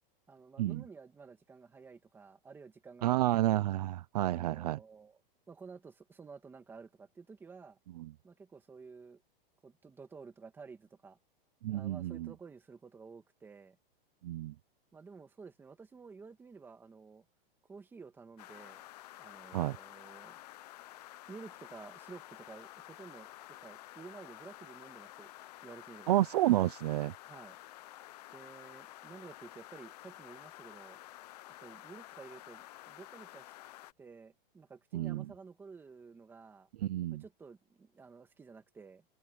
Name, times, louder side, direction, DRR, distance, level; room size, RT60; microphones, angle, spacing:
voice 1, 0.3-3.5 4.3-5.2 5.5-7.8 8.2-9.2 9.6-11.2 11.7-13.8 14.9-17.2 17.7-18.8 19.2-20.4 21.3-25.3 25.6-26.1 27.2-27.6 28.3-31.0 31.5-33.5 34.0-36.7 37.1-39.0, right 5 dB, 5° right, 1.7 m, -52 dB
voice 2, 3.0-4.8 8.0-8.1 11.6-12.3 14.2-14.5 19.5-19.8 26.1-27.1 34.9-35.3 36.8-37.2, right 15 dB, 45° right, 0.6 m, -30 dB
sound 1, 18.4-33.9, left 15 dB, 45° left, 0.8 m, -51 dB
supercardioid pair, 175°, 29 cm